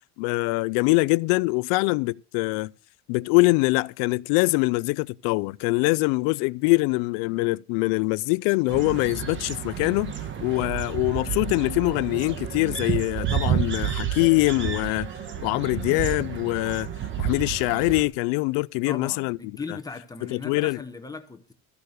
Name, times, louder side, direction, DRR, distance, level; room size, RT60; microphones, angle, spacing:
voice 1, 0.2-2.7 3.1-10.1 10.4-15.1 15.4-16.9 17.2-19.4 19.7-19.8 20.3-20.8, left 25 dB, 80° left, 0.5 m, -23 dB
sound 1, 8.7-18.0, right 9 dB, 35° right, 1.3 m, -30 dB
voice 2, 18.9-21.5, left 4 dB, 10° left, 0.9 m, -38 dB
13.5 x 6.7 x 6.6 m
cardioid pair, 155°, 33 cm